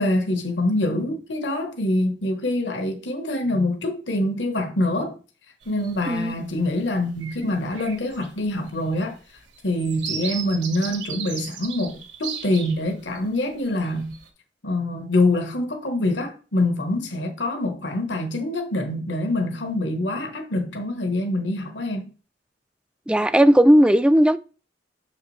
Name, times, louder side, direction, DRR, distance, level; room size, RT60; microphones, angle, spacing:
voice 1, 0.0-5.1 5.7-9.2 9.6-14.1 14.6-22.1, left 1 dB, 70° left, 1.1 m, -25 dB
sound 1, 5.6-6.2 6.7-6.9 7.1-13.2 13.6-14.3, right 7 dB, 75° right, 1.7 m, -36 dB
voice 2, 23.1-24.4, equal, 5° right, 0.3 m, -16 dB
7.0 x 5.7 x 3.1 m
head